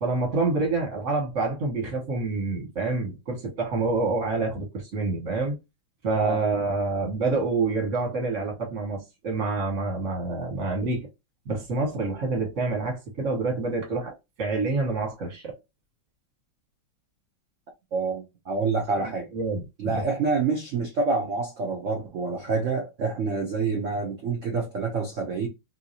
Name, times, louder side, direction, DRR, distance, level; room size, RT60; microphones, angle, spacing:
voice 1, 0.0-5.6 6.0-11.1 11.4-15.6 19.0-20.0, right 3 dB, 40° right, 1.4 m, -27 dB
voice 2, 17.9-19.3 19.8-25.5, right 4 dB, 85° right, 0.6 m, -27 dB
3.2 x 2.7 x 2.7 m
omnidirectional pair, 2.2 m